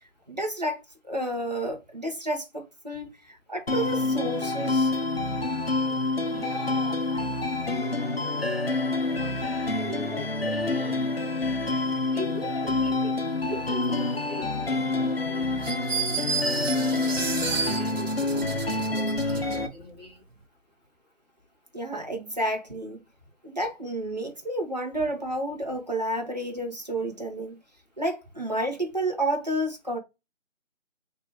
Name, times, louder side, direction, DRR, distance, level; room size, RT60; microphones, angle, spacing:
voice 1, 0.3-4.9 21.7-23.0 23.4-27.6 28.0-30.0, right 1 dB, 35° right, 0.9 m, -30 dB
sound 1, 3.7-19.7, left 2 dB, 50° left, 0.9 m, -27 dB
voice 2, 6.3-8.2 8.8-11.1 12.1-13.1 13.4-15.6 16.1-20.2, left 1 dB, 20° left, 1.8 m, -41 dB
sound 2, 15.6-19.6, right 5 dB, 85° right, 0.7 m, -31 dB
3.3 x 2.9 x 4.5 m
figure-of-eight pair, 175°, 38 cm